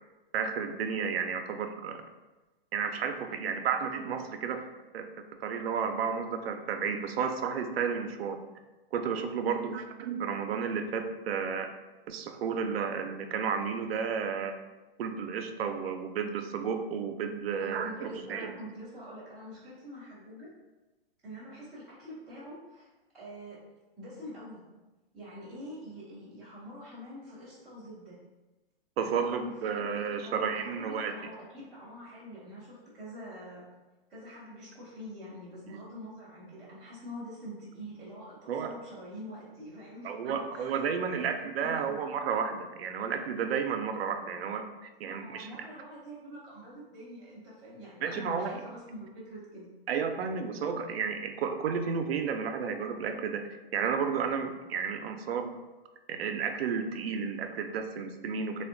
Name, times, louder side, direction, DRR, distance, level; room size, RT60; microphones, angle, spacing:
voice 1, 0.3-2.0 2.7-4.6 4.9-5.0 5.4-8.4 8.9-11.7 12.1-14.5 15.0-18.5 29.0-31.1 35.7-35.8 38.5-38.7 40.0-45.7 48.0-48.6 49.9-53.4 53.7-55.5 56.1-58.6, right 6 dB, 80° right, 6 dB, 0.5 m, -32 dB
voice 2, 9.4-9.8 17.5-20.5 21.2-22.9 23.1-23.6 24.0-24.6 25.1-28.2 29.0-29.7 30.2-33.6 34.1-42.0 45.1-49.7, equal, ahead, -17 dB, 0.3 m, -45 dB
3.4 x 2.2 x 2.5 m, 1.1 s
hypercardioid pair, 165°, 30 cm